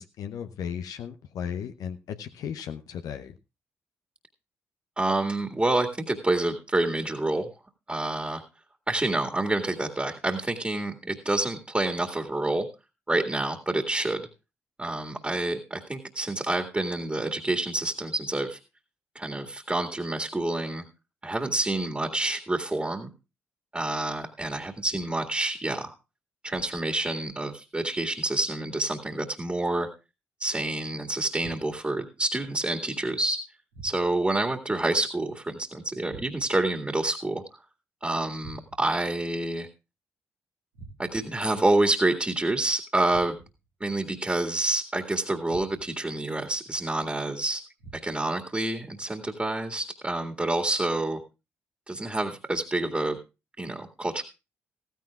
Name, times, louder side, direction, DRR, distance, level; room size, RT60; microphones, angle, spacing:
voice 1, 0.0-3.3, left 8 dB, 65° left, 0.8 m, -35 dB
voice 2, 5.0-7.5 7.9-8.4 8.9-12.7 13.1-14.2 14.8-18.6 19.2-20.8 21.2-23.1 23.7-25.9 26.4-29.9 30.4-33.4 33.8-37.4 38.0-39.7 41.0-43.4 43.8-47.6 47.9-51.2 51.9-53.2 53.6-54.2, right 2 dB, 20° right, 2.0 m, -28 dB
sound 1, 31.4-32.0 33.7-34.4 36.1-36.7 38.4-39.0 40.7-41.4 43.1-43.7 45.5-46.1 47.8-48.4, right 3 dB, 85° right, 2.5 m, -48 dB
15.0 x 15.0 x 2.4 m
hypercardioid pair, 40°, 7 cm